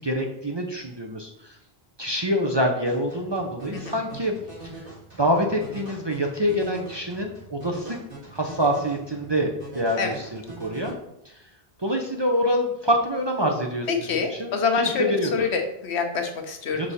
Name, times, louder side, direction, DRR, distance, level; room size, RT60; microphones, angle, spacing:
voice 1, 0.0-1.5 2.0-4.3 5.2-8.0 8.3-9.5 9.7-10.9 11.3-11.4 11.8-15.4 16.7-16.9, equal, 30° right, 1 dB, 0.5 m, -26 dB
sound 1, 2.9-10.9, right 2 dB, 55° right, 3.0 m, -43 dB
voice 2, 13.9-16.9, left 5 dB, 80° left, 5 dB, 1.1 m, -26 dB
5.3 x 4.7 x 4.2 m, 0.83 s
omnidirectional pair, 1.1 m